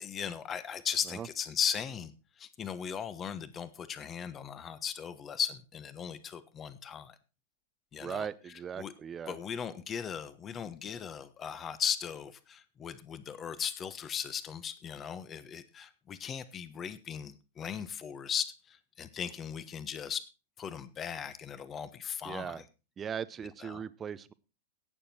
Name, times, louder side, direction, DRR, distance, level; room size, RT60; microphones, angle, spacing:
voice 1, 0.0-2.1 2.4-7.2 7.9-8.3 8.8-8.9 9.3-20.2 20.6-22.6 23.6-23.8, left 8 dB, 25° left, 14 dB, 1.2 m, -37 dB
voice 2, 8.0-9.4 22.2-22.6 23.0-24.3, right 8 dB, 25° right, 17 dB, 0.8 m, -39 dB
17.5 x 6.9 x 4.4 m, 0.31 s
hypercardioid pair, 115°, 0 cm